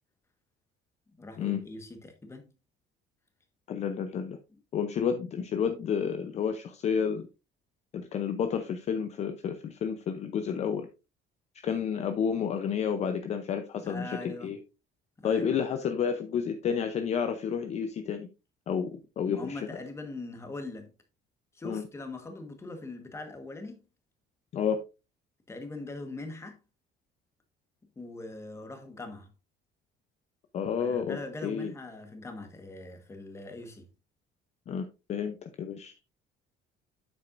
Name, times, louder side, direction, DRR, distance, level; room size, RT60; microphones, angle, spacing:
voice 1, 1.1-2.5 13.8-14.5 15.2-15.5 19.3-20.9 21.5-23.8 25.5-26.6 27.9-29.3 30.8-33.9, left 2 dB, 15° left, 1.4 m, -41 dB
voice 2, 3.7-4.4 4.7-7.3 7.9-10.9 11.6-14.6 15.2-18.3 18.7-18.9 19.2-19.6 21.6-21.8 24.5-24.8 30.5-31.7 34.7-36.0, left 7 dB, 35° left, 0.7 m, -30 dB
9.3 x 7.6 x 2.6 m
cardioid pair, 175°, 19 cm